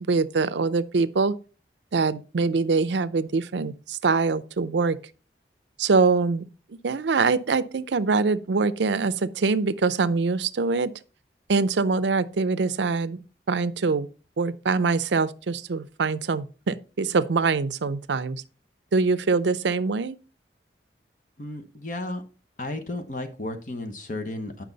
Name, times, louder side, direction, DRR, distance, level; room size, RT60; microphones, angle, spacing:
voice 1, 0.1-1.3 1.9-5.0 5.8-6.4 6.8-10.9 11.5-14.1 14.4-18.4 18.9-20.2, right 4 dB, 85° right, 0.5 m, -24 dB
voice 2, 21.4-22.2 22.6-24.6, left 2 dB, 45° left, 1.0 m, -33 dB
9.4 x 5.8 x 4.0 m
head